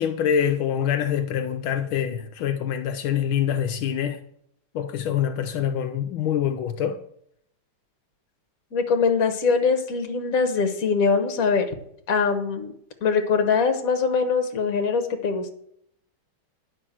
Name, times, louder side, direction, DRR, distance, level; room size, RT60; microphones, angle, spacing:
voice 1, 0.0-4.2 4.7-7.0, left 9 dB, 75° left, 1.5 m, -25 dB
voice 2, 8.7-11.7 12.1-12.7 13.0-15.5, left 5 dB, 45° left, 1.5 m, -22 dB
9.9 x 5.8 x 7.5 m
omnidirectional pair, 2.3 m